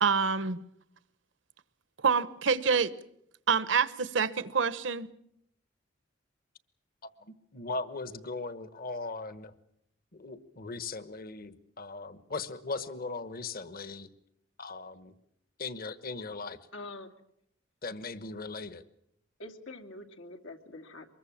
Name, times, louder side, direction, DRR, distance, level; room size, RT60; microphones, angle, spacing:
voice 1, 0.0-0.6 2.0-2.9 3.5-5.1, right 5 dB, 70° right, 1.0 m, -26 dB
voice 2, 7.5-9.5 10.1-14.1 14.6-15.1 15.6-16.6 17.8-18.8, left 3 dB, 50° left, 1.2 m, -38 dB
voice 3, 16.7-17.1 19.4-21.1, left 2 dB, 85° left, 2.5 m, -45 dB
24.0 x 21.5 x 7.3 m
head